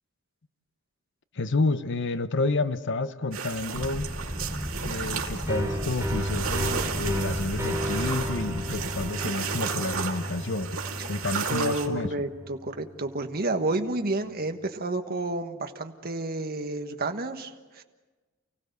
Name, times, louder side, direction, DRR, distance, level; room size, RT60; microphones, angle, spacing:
voice 1, 1.3-4.1 4.8-12.1, left 3 dB, 60° left, 12 dB, 0.8 m, -30 dB
sound 1, 3.3-11.9, right 6 dB, 90° right, 2.5 m, -34 dB
sound 2, 3.7-9.1, equal, 5° left, 1.5 m, -35 dB
sound 3, 5.5-12.9, equal, 15° right, 3.7 m, -34 dB
voice 2, 11.5-17.8, right 2 dB, 45° right, 6 dB, 1.4 m, -30 dB
29.0 x 16.5 x 6.8 m, 1.3 s
head